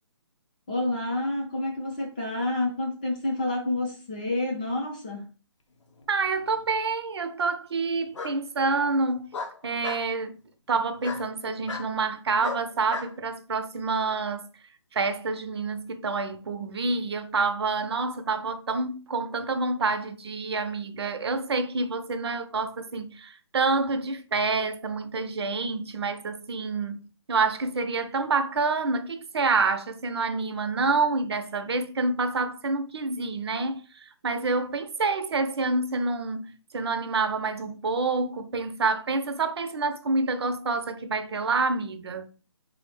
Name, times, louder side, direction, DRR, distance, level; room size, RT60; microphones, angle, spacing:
voice 1, 0.7-5.2, left 2 dB, 20° left, 0.5 m, -29 dB
Bark, 6.0-6.6 8.1-8.4 9.3-10.1 11.0-11.2 11.7-11.9 12.4-13.1, left 4 dB, 85° left, 0.7 m, -35 dB
voice 2, 6.1-9.3 9.6-10.4 10.7-14.5 14.9-27.0 27.3-42.3, right 3 dB, 60° right, 0.5 m, -27 dB
3.7 x 2.0 x 3.2 m
hypercardioid pair, 175°, 15 cm